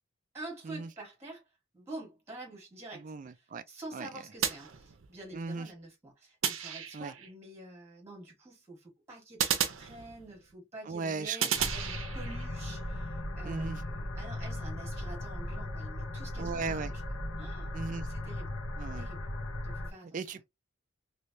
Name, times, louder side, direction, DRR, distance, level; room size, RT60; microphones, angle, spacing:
voice 1, 0.3-1.4 1.7-17.0 17.4-17.7 18.1-18.5 18.9-19.3 19.6-20.3, right 2 dB, 10° right, 1.5 m, -47 dB
voice 2, 2.9-3.6 3.9-4.1 5.3-5.7 6.9-7.1 10.9-11.4 13.4-13.8 16.4-16.9 17.7-18.1 18.8-19.1 20.1-20.4, right 4 dB, 40° right, 0.4 m, -36 dB
sound 1, 4.4-5.3 6.4-7.3 9.4-10.5 11.4-12.5, right 8 dB, 75° right, 0.7 m, -33 dB
sound 2, 11.6-19.9, left 1 dB, 75° left, 0.9 m, -37 dB
3.2 x 3.0 x 2.7 m
head